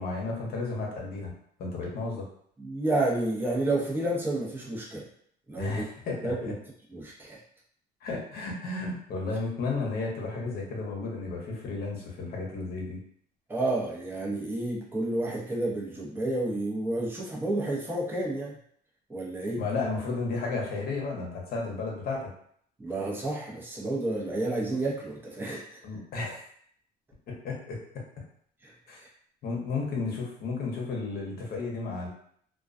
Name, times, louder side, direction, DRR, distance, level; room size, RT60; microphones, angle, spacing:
voice 1, 0.0-1.3 1.6-2.2 5.6-6.5 8.0-13.0 19.6-22.3 25.8-26.4 27.3-27.8 28.9-29.0 29.4-32.1, left 3 dB, 65° left, -1 dB, 0.8 m, -33 dB
voice 2, 2.6-5.0 5.5-5.8 6.2-6.5 6.9-7.4 13.5-18.6 19.1-19.6 22.8-25.8 28.6-28.7 29.0-29.1, right 2 dB, 10° right, -5 dB, 0.7 m, -30 dB
2.3 x 2.2 x 2.4 m, 0.64 s
cardioid pair, 110°, 17 cm